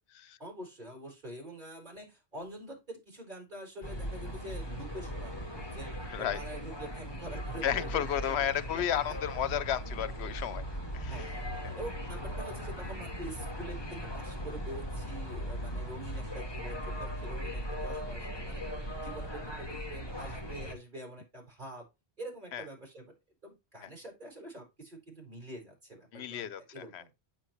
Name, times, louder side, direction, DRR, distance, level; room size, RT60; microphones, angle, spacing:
voice 1, 0.4-5.9 6.2-8.1 8.7-9.0 11.1-18.6 18.9-21.9 22.2-23.1 23.4-27.1, right 1 dB, 50° right, 5.0 m, -45 dB
sound 1, 3.8-20.7, equal, 25° left, 1.7 m, -38 dB
voice 2, 7.6-10.6 10.9-11.1 22.5-22.6 26.1-26.6 26.9-27.0, left 10 dB, 85° left, 0.9 m, -32 dB
8.8 x 7.5 x 3.1 m
omnidirectional pair, 1.1 m